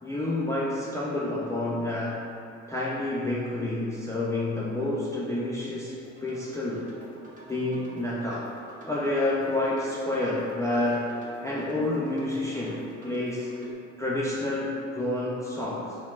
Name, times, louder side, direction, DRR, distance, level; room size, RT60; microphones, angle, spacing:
voice 1, 0.0-2.2 2.7-6.9 7.5-8.5 8.9-11.1 11.4-13.5 14.0-16.0, left 1 dB, 10° left, -6 dB, 0.4 m, -29 dB
sound 1, 6.0-13.7, right 1 dB, 25° right, 0.8 m, -48 dB
5.6 x 2.0 x 2.3 m, 2.7 s
cardioid pair, 90°, 30 cm